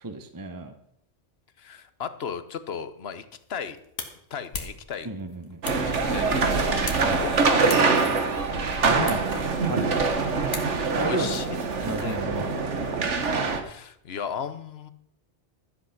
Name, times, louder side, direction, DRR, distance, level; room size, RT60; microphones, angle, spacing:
voice 1, 0.0-0.7 5.0-5.6 7.0-7.2 8.8-9.2 9.7-10.0 10.9-12.7, right 2 dB, 20° right, 8 dB, 0.8 m, -33 dB
voice 2, 1.6-3.8 4.3-5.1 5.6-6.9 7.1-8.0 8.9-9.4 10.0-10.1 11.0-11.6 12.0-12.5 13.6-14.9, left 7 dB, 60° left, 12 dB, 1.1 m, -36 dB
sound 1, 3.3-11.1, left 4 dB, 90° left, 1.9 m, -41 dB
sound 2, 5.6-13.6, right 4 dB, 85° right, 1.6 m, -24 dB
Wind instrument woodwind instrument, 6.0-10.9, equal, 45° right, 1.2 m, -40 dB
13.0 x 8.2 x 5.8 m, 0.71 s
omnidirectional pair, 1.2 m